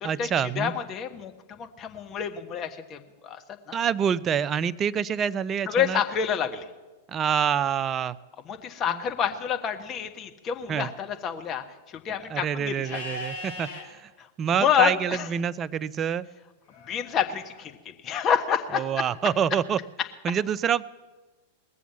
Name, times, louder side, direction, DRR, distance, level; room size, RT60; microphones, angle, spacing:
voice 1, 0.0-0.7 3.7-6.0 7.1-8.2 8.9-9.0 10.7-10.9 12.3-14.1 14.4-16.3 18.7-19.8 20.2-20.9, right 8 dB, 25° right, 20 dB, 0.4 m, -26 dB
voice 2, 0.6-3.4 3.7-3.8 5.7-6.7 8.5-11.6 12.0-13.0 14.2-14.3 14.6-15.3 16.9-18.9, left 8 dB, 30° left, 6 dB, 1.3 m, -28 dB
Livestock farm animals working animals, 12.8-13.8 16.7-17.6, left 1 dB, 70° left, 3.5 m, -39 dB
20.0 x 7.1 x 7.1 m, 1.2 s
figure-of-eight pair, 95°, 0 cm